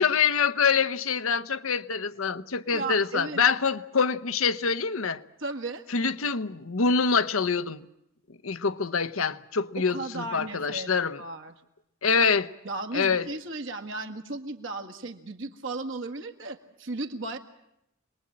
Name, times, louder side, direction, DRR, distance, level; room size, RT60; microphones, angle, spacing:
voice 1, 0.0-5.2 5.9-7.8 8.4-11.2 12.0-12.5 12.9-13.3, left 5 dB, 75° left, 0.9 m, -25 dB
voice 2, 2.7-3.4 5.4-5.8 9.8-10.9 11.2-11.5 12.6-17.4, right 3 dB, 60° right, 1.9 m, -35 dB
26.5 x 20.5 x 8.8 m
head